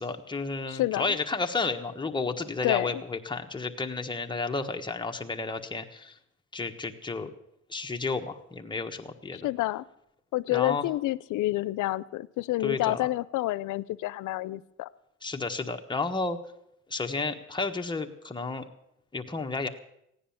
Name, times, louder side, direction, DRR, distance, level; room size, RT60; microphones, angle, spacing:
voice 1, 0.0-6.1 6.5-7.3 7.7-9.4 10.5-10.8 12.6-13.1 15.2-16.4 16.9-18.7 19.1-19.7, left 3 dB, 15° left, 4 dB, 1.3 m, -32 dB
voice 2, 0.7-1.2 2.6-3.0 9.3-9.8 10.3-14.9, left 17 dB, 85° left, 18 dB, 0.6 m, -29 dB
15.5 x 9.9 x 7.1 m, 0.77 s
cardioid pair, 90°, 30 cm